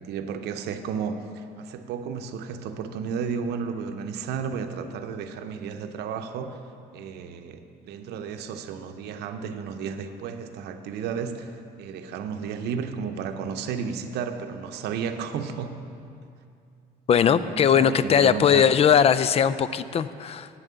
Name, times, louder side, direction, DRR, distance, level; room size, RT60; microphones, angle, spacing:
voice 1, 0.0-6.6 6.9-11.5 11.8-15.8 17.3-18.7, right 6 dB, 80° right, 7 dB, 0.7 m, -33 dB
voice 2, 17.1-20.5, left 8 dB, 35° left, 15 dB, 0.4 m, -20 dB
9.1 x 7.3 x 6.9 m, 2.4 s
cardioid pair, 110°, 17 cm